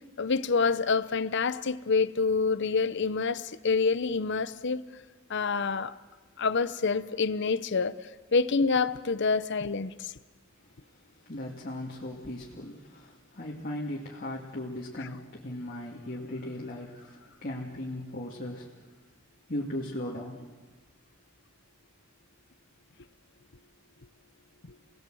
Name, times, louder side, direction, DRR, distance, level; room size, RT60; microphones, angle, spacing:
voice 1, 0.2-4.8 5.3-5.9 6.4-7.9 8.3-10.1 15.0-15.1, left 4 dB, 60° left, 0.7 m, -27 dB
voice 2, 11.3-18.7 19.5-20.5, left 1 dB, 45° left, 2.4 m, -37 dB
29.5 x 19.0 x 7.8 m
head